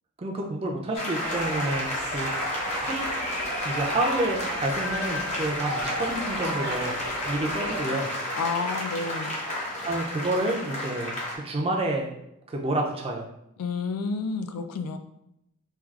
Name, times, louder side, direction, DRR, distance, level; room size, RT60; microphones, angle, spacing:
voice 1, 0.2-2.3 2.8-3.0 3.6-7.0 7.2-8.1 9.8-11.2 11.4-12.1 12.5-13.3, right 1 dB, 25° right, 1 dB, 0.4 m, -29 dB
sound 1, 0.9-11.4, left 1 dB, 30° left, 0.6 m, -31 dB
sound 2, 1.2-7.8, right 2 dB, 85° right, 0.9 m, -37 dB
voice 2, 8.3-9.4 13.6-15.0, left 4 dB, 80° left, 8 dB, 0.3 m, -30 dB
4.5 x 2.3 x 2.4 m, 0.82 s
head